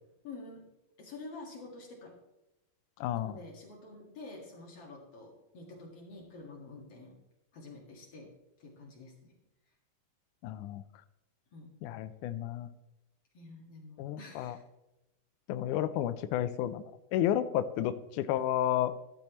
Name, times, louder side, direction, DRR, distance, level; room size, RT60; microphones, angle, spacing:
voice 1, 0.2-0.7 1.0-2.2 3.1-7.1 7.5-8.3 8.6-9.3 11.5-11.7 13.3-14.6, left 3 dB, 50° left, -1 dB, 2.5 m, -48 dB
voice 2, 3.0-3.4 10.4-10.8 11.8-12.7 14.0-14.6 15.5-16.8 17.1-19.0, left 11 dB, 80° left, 10 dB, 1.8 m, -31 dB
13.5 x 11.5 x 3.0 m, 0.93 s
omnidirectional pair, 4.1 m